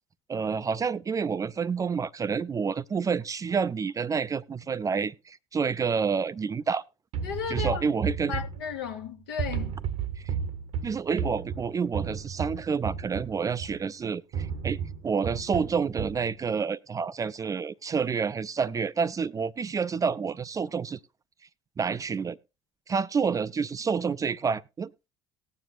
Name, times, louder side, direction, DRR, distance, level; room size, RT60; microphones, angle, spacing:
voice 1, 0.3-6.8 7.5-8.3 10.2-10.3 10.8-14.8 15.0-21.0 21.8-22.4 22.9-24.9, right 5 dB, 25° right, 0.4 m, -29 dB
sound 1, 7.1-9.1 9.4-13.9 14.3-16.3, right 7 dB, 55° right, 0.9 m, -33 dB
voice 2, 7.2-7.8 8.3-9.7, left 7 dB, 75° left, 1.2 m, -34 dB
19.0 x 7.4 x 2.4 m
figure-of-eight pair, 55°, 13 cm